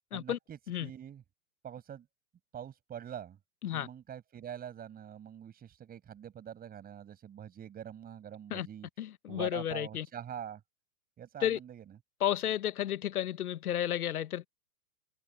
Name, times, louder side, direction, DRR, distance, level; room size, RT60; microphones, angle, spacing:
voice 1, 0.1-1.2 1.6-2.1 2.5-3.4 3.7-8.9 9.3-10.6 11.2-12.0, right 9 dB, 20° right, 7.4 m, -45 dB
voice 2, 9.0-10.1 11.4-11.6 12.2-14.5, left 11 dB, 70° left, 1.2 m, -32 dB
hypercardioid pair, 125°, 46 cm